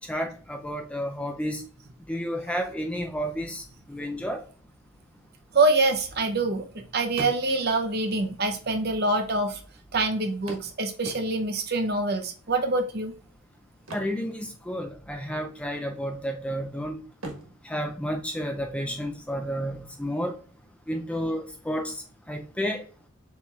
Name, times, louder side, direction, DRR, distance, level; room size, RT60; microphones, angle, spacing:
voice 1, 0.1-1.6 2.1-3.6 3.9-4.4 13.9-17.0 17.6-20.4 20.9-22.0 22.3-22.9, equal, 5° left, 0.3 m, -31 dB
voice 2, 5.5-6.6 6.9-9.6 9.9-13.1, right 2 dB, 45° right, 0.7 m, -25 dB
sound 1, 7.2-7.9 8.8-8.9 9.1-9.2 10.5-11.7 13.7-15.0 15.3-15.5 16.0-16.7 17.1-18.9 20.9-21.0 21.4-21.5, right 1 dB, 75° right, 1.3 m, -43 dB
6.9 x 3.0 x 2.4 m
head